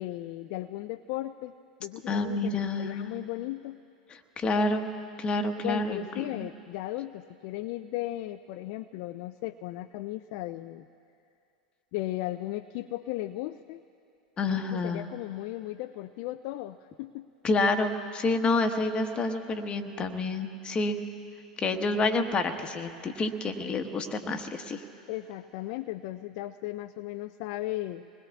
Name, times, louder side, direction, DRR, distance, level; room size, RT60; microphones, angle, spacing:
voice 1, 0.0-1.5 1.8-3.8 5.6-10.9 11.9-13.8 14.7-17.3 25.1-28.0, left 16 dB, 55° left, 8 dB, 0.4 m, -36 dB
voice 2, 2.1-3.1 4.1-4.9 5.2-6.5 14.4-15.0 17.4-21.0 21.6-24.8, left 2 dB, 25° left, 6 dB, 1.2 m, -28 dB
27.5 x 20.5 x 2.4 m, 2.5 s
hypercardioid pair, 90°, 4 cm